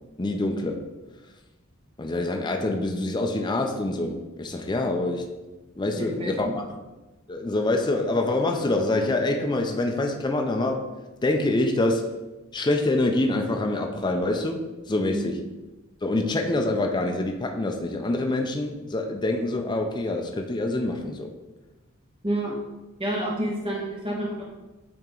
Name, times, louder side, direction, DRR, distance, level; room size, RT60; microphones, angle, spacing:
voice 1, 0.2-0.8 2.0-5.3 5.8-6.8 7.3-10.9 11.2-12.1 12.5-15.3 16.0-21.3, left 2 dB, 20° left, 2 dB, 0.4 m, -26 dB
voice 2, 6.0-6.5 15.1-15.2 22.2-22.6 23.0-24.4, right 1 dB, 25° right, -3 dB, 1.2 m, -29 dB
8.6 x 2.9 x 3.7 m, 1.1 s
head